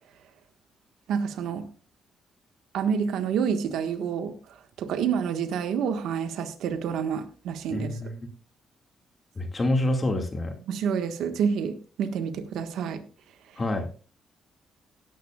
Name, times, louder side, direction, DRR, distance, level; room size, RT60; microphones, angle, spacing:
voice 1, 1.1-1.6 2.7-4.3 4.8-8.0 10.7-13.0, right 7 dB, 85° right, 8 dB, 1.5 m, -28 dB
voice 2, 7.7-8.2 9.4-10.5 13.6-13.9, left 1 dB, 30° left, 4 dB, 2.1 m, -27 dB
17.5 x 10.0 x 2.4 m, 0.36 s
cardioid pair, 100°, 0 cm